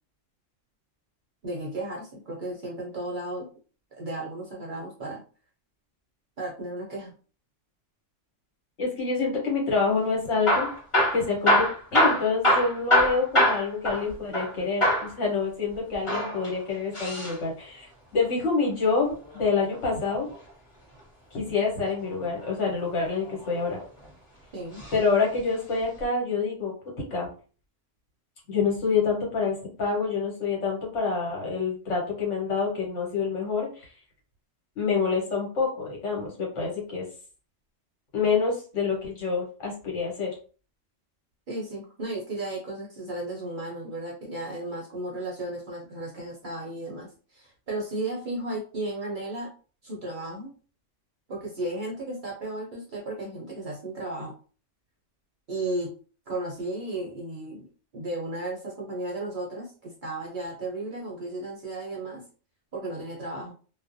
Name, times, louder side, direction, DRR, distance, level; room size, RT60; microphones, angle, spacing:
voice 1, 1.4-3.5 4.0-5.2 6.4-7.1 24.5-24.8 41.5-49.5 49.8-50.5 51.3-54.3 55.5-55.9 56.3-57.7 57.9-62.2 62.7-63.5, right 2 dB, 55° right, -2 dB, 0.6 m, -34 dB
voice 2, 8.8-10.7 11.1-20.3 21.3-23.8 24.9-27.3 28.5-33.9 34.8-37.0 38.1-40.3, left 4 dB, 70° left, -2 dB, 1.3 m, -27 dB
Hammer / Drill, 10.3-14.5 14.8-15.1 15.9-17.4 19.1-20.4 22.1-22.5 23.2-24.1 24.7-25.0 25.3-25.4 26.0-26.1, equal, 25° left, 1.0 m, -24 dB
2.4 x 2.1 x 2.5 m, 0.38 s
omnidirectional pair, 1.3 m